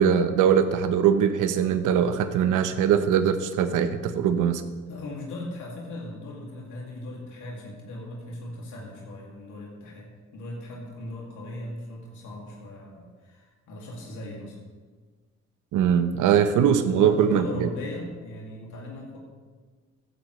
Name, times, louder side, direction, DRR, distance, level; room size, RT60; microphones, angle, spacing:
voice 1, 0.0-4.6 15.7-17.7, right 8 dB, 90° right, 10 dB, 0.9 m, -21 dB
voice 2, 4.9-14.6 16.8-19.2, left 2 dB, 80° left, -3 dB, 2.4 m, -38 dB
14.0 x 10.0 x 3.2 m, 1.4 s
cardioid pair, 90°, 30 cm